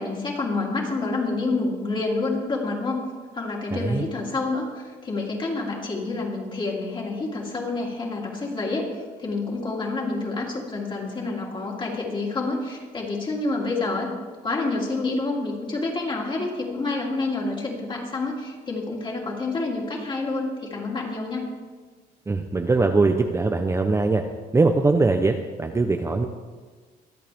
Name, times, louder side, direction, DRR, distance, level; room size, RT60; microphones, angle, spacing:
voice 1, 0.0-3.0 3.3-8.9 9.2-14.1 14.4-21.5, left 3 dB, 30° left, -2 dB, 3.3 m, -28 dB
voice 2, 3.7-4.1 22.3-24.2 24.5-26.3, right 3 dB, 15° right, 5 dB, 0.7 m, -21 dB
24.5 x 8.5 x 3.6 m, 1.4 s
cardioid pair, 110°, 17 cm